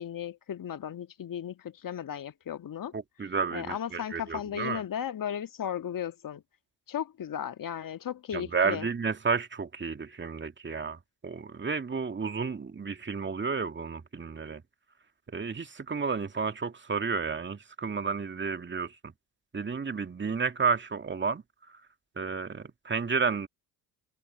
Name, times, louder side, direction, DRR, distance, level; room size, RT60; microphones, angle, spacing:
voice 1, 0.0-2.9 3.5-6.4 6.9-8.9, left 9 dB, 40° left, 1.9 m, -35 dB
voice 2, 2.9-4.8 8.3-14.6 15.3-19.1 19.5-21.4 22.2-23.5, right 5 dB, 20° right, 2.1 m, -31 dB
hypercardioid pair, 55°, 50 cm